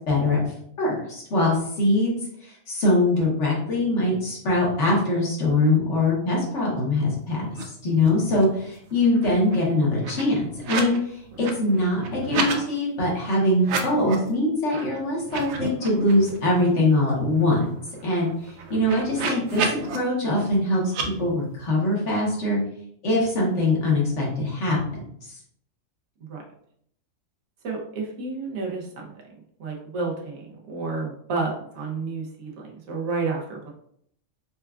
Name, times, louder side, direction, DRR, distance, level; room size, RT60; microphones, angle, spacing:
voice 1, 0.1-0.4 0.8-10.4 10.7-17.7 18.0-18.3 18.7-22.6 23.0-24.8, left 2 dB, 60° left, -3 dB, 1.3 m, -23 dB
sound 1, 7.5-7.6 7.9-8.6 8.9-11.0 11.3-12.6 13.6-14.3 14.7-14.8 15.2-16.5 16.9-17.0 17.3-20.0 20.9-21.1, right 4 dB, 65° right, 0.8 m, -31 dB
voice 2, 27.6-33.7, right 3 dB, 85° right, -1 dB, 1.2 m, -31 dB
4.4 x 2.3 x 2.3 m, 0.69 s
omnidirectional pair, 1.4 m